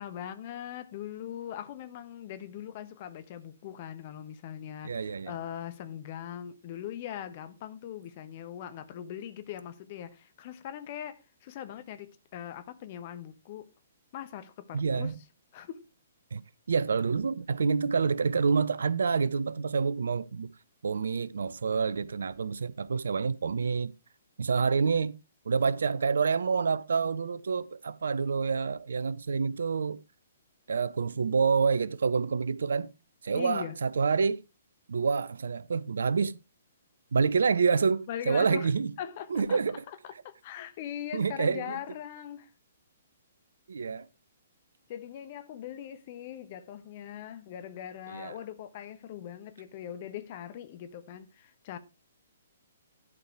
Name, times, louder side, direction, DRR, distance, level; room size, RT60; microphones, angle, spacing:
voice 1, 0.0-13.7 14.1-15.1 15.5-15.8 33.3-33.8 38.1-38.7 39.0-39.6 39.9-42.5 44.9-51.8, left 10 dB, 40° left, 1.2 m, -41 dB
voice 2, 4.8-5.3 14.7-15.1 16.3-16.4 16.7-20.5 20.8-23.9 24.4-25.2 25.5-30.0 30.7-32.9 33.2-34.4 34.9-36.4 37.1-38.9 39.3-39.8 41.1-41.8 43.7-44.1 48.1-48.4, right 5 dB, 65° right, 0.6 m, -27 dB
11.0 x 4.7 x 4.7 m
figure-of-eight pair, 125°, 0 cm